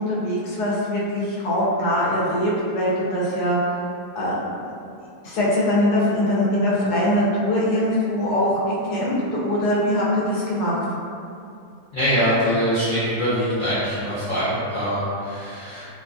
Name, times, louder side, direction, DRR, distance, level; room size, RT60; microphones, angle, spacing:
voice 1, 0.0-3.7 4.1-4.4 4.6-4.7 5.2-10.8, left 1 dB, 85° left, -6 dB, 1.1 m, -22 dB
voice 2, 11.9-15.9, equal, 55° left, -12 dB, 0.5 m, -23 dB
2.9 x 2.2 x 2.4 m, 2.5 s
omnidirectional pair, 1.6 m